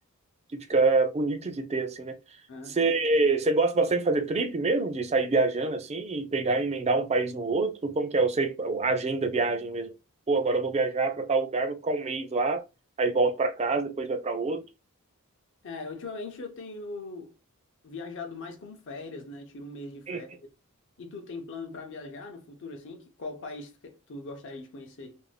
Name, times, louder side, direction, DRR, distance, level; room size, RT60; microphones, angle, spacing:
voice 1, 0.5-2.2 2.7-9.9 10.3-12.6 13.0-14.6 20.1-20.2, right 3 dB, 30° right, 0.4 m, -26 dB
voice 2, 2.5-2.8 15.6-17.3 17.8-20.5 21.0-25.2, left 3 dB, 55° left, 0.6 m, -40 dB
2.6 x 2.1 x 3.2 m
head